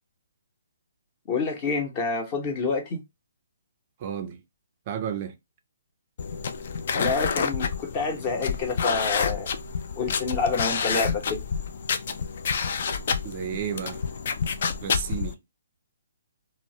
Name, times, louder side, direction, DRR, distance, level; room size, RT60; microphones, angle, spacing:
voice 1, 1.3-3.0 6.9-9.5 10.0-11.4, left 4 dB, 30° left, 0.8 m, -28 dB
voice 2, 4.0-4.4 4.9-5.3 13.2-14.0 14.8-15.4, right 9 dB, 35° right, 0.4 m, -32 dB
sound 1, 6.2-15.3, left 6 dB, 50° left, 0.3 m, -28 dB
2.1 x 2.0 x 2.8 m
hypercardioid pair, 150°, 0 cm